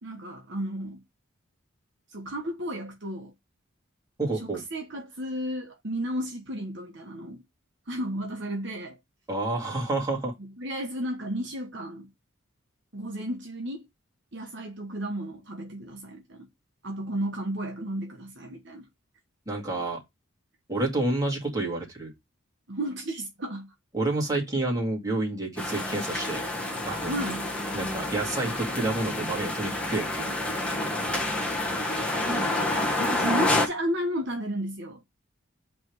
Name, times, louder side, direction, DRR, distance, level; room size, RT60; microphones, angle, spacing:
voice 1, 0.0-1.0 2.1-3.3 4.4-7.4 7.9-9.0 10.4-12.1 12.9-13.8 14.3-16.5 16.8-18.9 22.7-23.7 27.1-27.5 30.7-30.8 32.2-35.0, right 1 dB, 55° right, 1.2 m, -33 dB
voice 2, 4.2-4.6 9.3-10.3 19.5-20.0 20.7-22.1 23.9-26.4 26.9-27.1 27.7-30.3, right 2 dB, 15° right, 2.3 m, -29 dB
sound 1, 25.6-33.7, left 1 dB, 5° left, 1.3 m, -28 dB
8.4 x 3.4 x 4.6 m
head